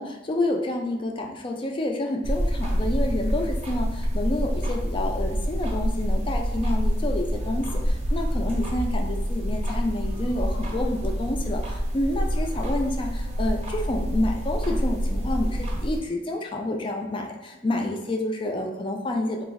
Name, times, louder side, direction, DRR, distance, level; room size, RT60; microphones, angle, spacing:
voice 1, 0.0-19.4, left 1 dB, 25° left, 2 dB, 0.4 m, -29 dB
sound 1, 2.2-16.0, equal, 35° right, 0.6 m, -27 dB
3.5 x 2.4 x 3.0 m, 1.0 s
head